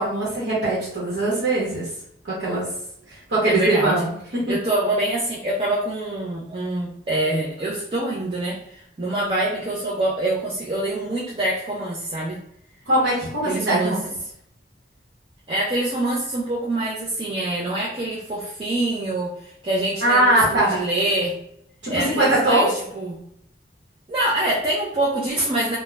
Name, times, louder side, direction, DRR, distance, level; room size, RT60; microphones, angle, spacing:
voice 1, 0.0-1.9 2.3-2.7 3.1-4.1 12.9-14.1 20.0-20.8 21.8-22.7, right 1 dB, 85° right, -7 dB, 0.9 m, -21 dB
voice 2, 3.4-4.1 4.5-12.4 13.4-14.0 15.5-21.3 21.9-23.2 24.1-25.8, right 1 dB, 30° right, -5 dB, 0.4 m, -25 dB
2.3 x 2.1 x 3.1 m, 0.71 s
head